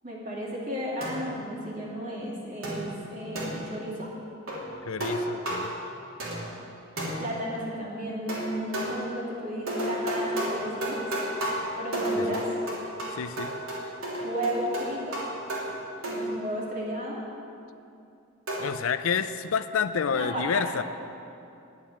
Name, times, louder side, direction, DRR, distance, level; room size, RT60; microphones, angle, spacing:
voice 1, 0.0-4.1 7.2-11.1 11.8-12.5 14.2-15.2 16.0-17.2 20.1-20.6, equal, 40° right, -4 dB, 2.7 m, -33 dB
sound 1, 1.0-1.5 2.6-3.8 4.5-4.7 5.0-5.8 6.2-6.7 7.0-7.5 8.3-9.1 9.7-16.5 18.5-18.8, right 1 dB, 75° right, 3.0 m, -32 dB
voice 2, 4.9-5.7 12.2-12.4 13.1-13.5 18.6-20.8, left 6 dB, 70° left, 12 dB, 0.5 m, -29 dB
11.0 x 7.3 x 9.0 m, 2.7 s
head